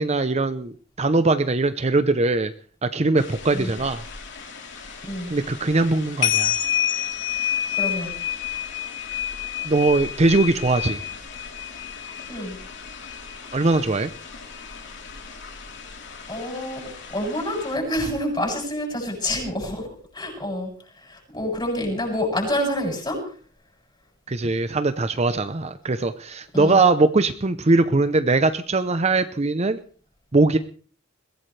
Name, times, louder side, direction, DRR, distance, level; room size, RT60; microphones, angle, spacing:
voice 1, 0.0-2.5 2.8-4.0 5.3-6.6 9.6-11.0 13.5-14.1 24.3-29.8 30.3-30.6, right 3 dB, 35° right, 10 dB, 0.7 m, -21 dB
sound 1, 3.2-17.7, left 10 dB, 65° left, 3.6 m, -30 dB
voice 2, 7.7-8.1 12.3-12.6 16.3-19.9 20.1-23.3 26.5-26.8, left 1 dB, 25° left, 1 dB, 7.8 m, -28 dB
22.0 x 16.5 x 3.3 m, 0.42 s
head